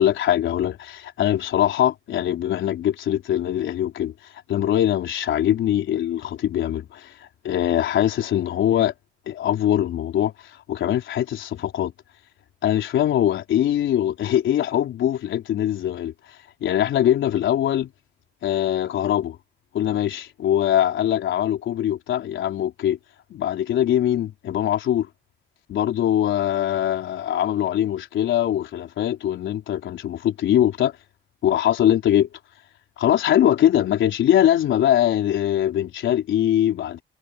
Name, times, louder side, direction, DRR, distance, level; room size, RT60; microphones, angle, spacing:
voice 1, 0.0-4.1 4.5-8.9 9.3-10.3 10.7-11.9 12.6-16.1 16.6-17.9 18.4-19.4 19.7-23.0 23.3-25.1 25.7-31.0 31.4-32.3 33.0-37.0, left 11 dB, 75° left, 4.1 m, -22 dB
cardioid pair, 90°, 20 cm